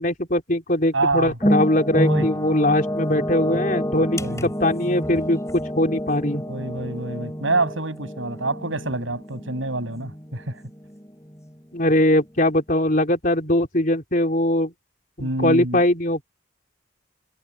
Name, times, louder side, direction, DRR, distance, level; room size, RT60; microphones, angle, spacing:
voice 1, 0.0-4.2 4.6-6.4 11.7-14.7 15.2-16.2, left 1 dB, 45° left, 3.9 m, -21 dB
voice 2, 0.9-1.4 2.0-2.3 4.2-4.5 6.5-10.6 15.2-15.8, right 2 dB, 90° right, 7.7 m, -26 dB
sound 1, 1.4-11.5 11.8-12.0, equal, 15° left, 4.7 m, -28 dB
head